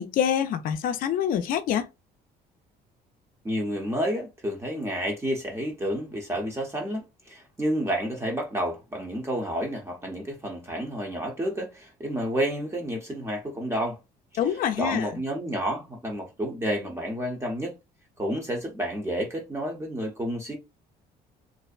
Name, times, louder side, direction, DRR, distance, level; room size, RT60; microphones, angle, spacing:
voice 1, 0.0-1.9 14.4-15.1, left 9 dB, 55° left, 0.4 m, -26 dB
voice 2, 3.4-14.0 14.8-17.8 18.2-20.6, equal, 15° right, 0.6 m, -30 dB
2.5 x 2.1 x 2.3 m
cardioid pair, 110°, 17 cm